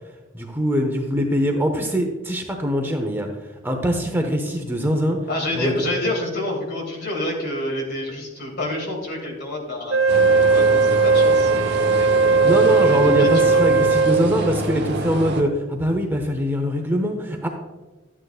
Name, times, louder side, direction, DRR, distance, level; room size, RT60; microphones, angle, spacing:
voice 1, 0.3-3.3 3.6-5.2 5.5-5.8 12.4-17.5, equal, 10° right, 3 dB, 0.7 m, -22 dB
voice 2, 5.3-10.0 10.4-12.1 13.0-13.6, left 1 dB, 50° left, 0 dB, 2.4 m, -28 dB
Wind instrument woodwind instrument, 9.9-14.3, right 4 dB, 80° right, 1.6 m, -17 dB
sound 1, 10.1-15.4, right 2 dB, 55° right, 1.0 m, -28 dB
12.0 x 8.9 x 2.4 m, 1.2 s
head